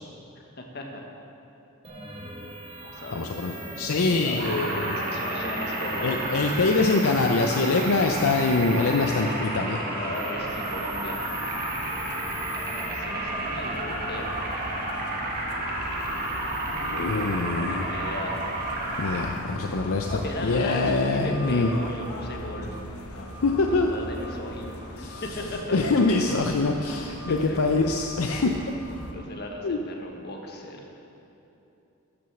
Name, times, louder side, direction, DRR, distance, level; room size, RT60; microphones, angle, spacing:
voice 1, 0.3-1.0 2.8-3.4 4.2-6.4 9.8-11.3 12.9-14.3 17.1-18.5 20.1-22.8 23.7-25.8 26.1-26.5 27.3-27.7 29.1-30.9, left 1 dB, 45° left, 1 dB, 1.3 m, -37 dB
sound 1, 1.8-19.4, right 1 dB, 25° right, 1.4 m, -39 dB
voice 2, 3.1-5.0 6.0-9.8 16.8-17.9 19.0-21.7 23.4-23.9 25.0-25.2 25.7-28.5 29.6-29.8, left 3 dB, 70° left, 3 dB, 0.5 m, -24 dB
sound 2, 4.4-19.2, right 1 dB, 45° right, 1.7 m, -32 dB
sound 3, 10.3-29.1, equal, 90° left, 1.3 m, -38 dB
12.0 x 6.2 x 7.1 m, 2.9 s
head